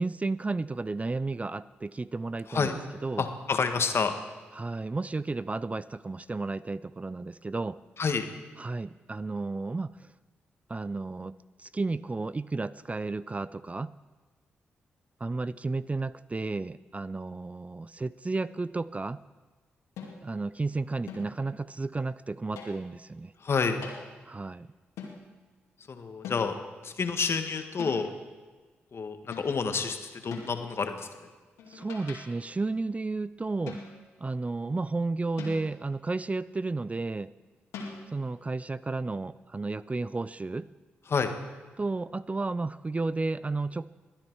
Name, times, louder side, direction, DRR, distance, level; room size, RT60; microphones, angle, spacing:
voice 1, 0.0-3.3 4.6-7.8 8.6-9.9 10.7-13.9 15.2-19.2 20.2-23.3 24.3-24.7 31.7-33.8 34.2-37.3 38.1-40.7 41.8-43.9, right 3 dB, 25° right, 17 dB, 0.4 m, -32 dB
voice 2, 3.2-4.1 8.0-8.2 23.4-23.8 25.9-26.5 26.8-28.1 28.9-31.1 41.1-41.3, left 5 dB, 55° left, 7 dB, 1.5 m, -29 dB
sound 1, 20.0-20.4 21.1-21.5 22.6-22.9 23.8-24.1 25.0-25.3 26.2-26.7 27.8-28.2 29.3-29.7 30.3-30.7 31.6-32.5 33.7-34.2 35.4-35.9 37.7-38.0, left 4 dB, 85° left, 2.3 m, -42 dB
20.5 x 9.8 x 4.7 m, 1.3 s
hypercardioid pair, 40°, 5 cm